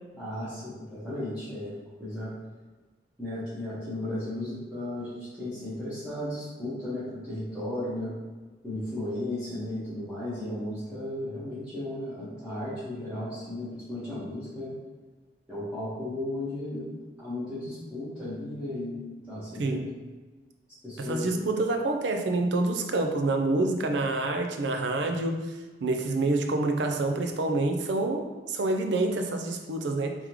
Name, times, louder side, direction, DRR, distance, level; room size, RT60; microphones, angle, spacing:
voice 1, 0.1-1.7 2.0-2.3 3.2-8.1 8.6-14.7 15.5-16.9 17.2-19.9 20.8-21.5, left 1 dB, 5° right, -15 dB, 1.3 m, -35 dB
voice 2, 19.6-19.9 21.0-25.5 25.8-30.2, right 2 dB, 75° right, 4 dB, 0.5 m, -27 dB
3.6 x 3.4 x 3.1 m, 1.3 s
head